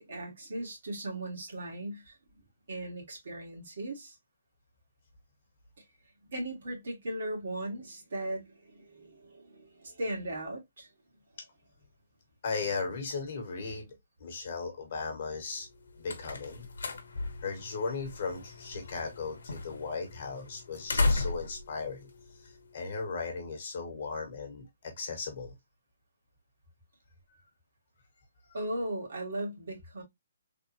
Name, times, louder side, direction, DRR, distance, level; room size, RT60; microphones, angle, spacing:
voice 1, 0.1-2.2 2.7-4.1 6.3-10.9 28.5-30.0, right 1 dB, 55° right, 1.5 m, -37 dB
voice 2, 12.4-13.9 14.2-15.7 16.0-16.7 17.4-22.1 22.4-25.5, left 4 dB, 40° left, 1.1 m, -37 dB
sound 1, 15.6-23.0, left 3 dB, 80° left, 0.8 m, -35 dB
3.4 x 2.2 x 2.7 m
hypercardioid pair, 175°, 0 cm